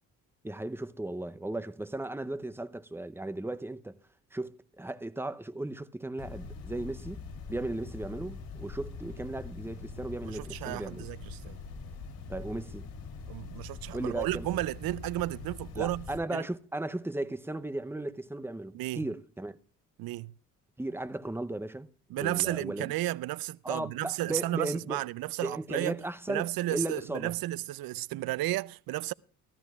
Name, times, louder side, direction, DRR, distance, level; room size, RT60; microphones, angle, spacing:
voice 1, 0.4-3.9 4.3-7.2 7.5-11.1 12.3-12.9 13.9-14.5 15.8-19.6 20.8-21.9 22.2-22.9 23.6-25.0 25.4-27.3, right 2 dB, 5° right, 0.7 m, -36 dB
sound 1, 6.2-16.2, left 4 dB, 80° left, 2.3 m, -43 dB
voice 2, 10.2-11.6 13.3-16.4 18.7-19.1 20.0-20.3 22.1-29.1, right 16 dB, 80° right, 0.5 m, -33 dB
15.0 x 13.5 x 2.4 m
cardioid pair, 80°, 35 cm